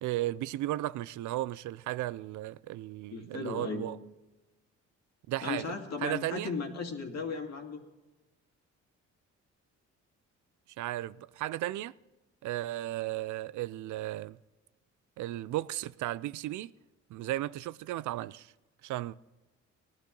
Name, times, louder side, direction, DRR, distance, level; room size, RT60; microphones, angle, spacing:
voice 1, 0.0-4.0 5.3-5.7 6.0-6.5 10.8-11.9 12.4-14.4 15.2-16.7 17.1-18.5 18.8-19.1, right 15 dB, 75° right, 0.5 m, -35 dB
voice 2, 3.1-3.8 5.4-7.8, left 4 dB, 60° left, 2.4 m, -36 dB
19.0 x 11.5 x 3.9 m
cardioid pair, 90°, 30 cm